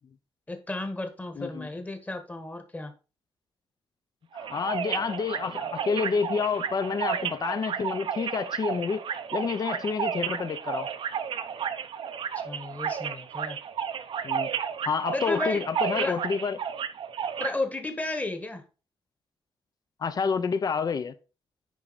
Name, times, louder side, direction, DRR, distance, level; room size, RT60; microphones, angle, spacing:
voice 1, 0.5-2.9 12.3-13.6 15.1-15.6 16.0-16.2 17.4-18.6, left 2 dB, 15° left, 1.3 m, -33 dB
voice 2, 1.4-1.7 4.3-9.0 9.3-10.9 14.2-14.5 14.8-16.6 20.0-21.1, left 5 dB, 40° left, 0.7 m, -29 dB
sound 1, 4.3-17.5, right 7 dB, 60° right, 0.7 m, -32 dB
9.3 x 5.0 x 4.1 m
wide cardioid pair, 150°, 10 cm